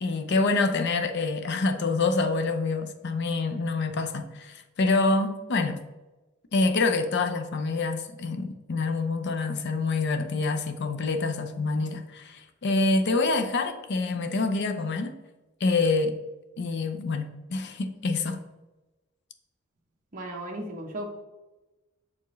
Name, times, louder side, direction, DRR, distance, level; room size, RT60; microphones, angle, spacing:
voice 1, 0.0-5.8 6.5-15.1 15.6-16.1 16.6-18.4, left 3 dB, 55° left, 0.5 m, -26 dB
voice 2, 20.1-21.1, right 1 dB, 40° right, 0.8 m, -35 dB
7.2 x 4.5 x 3.1 m
head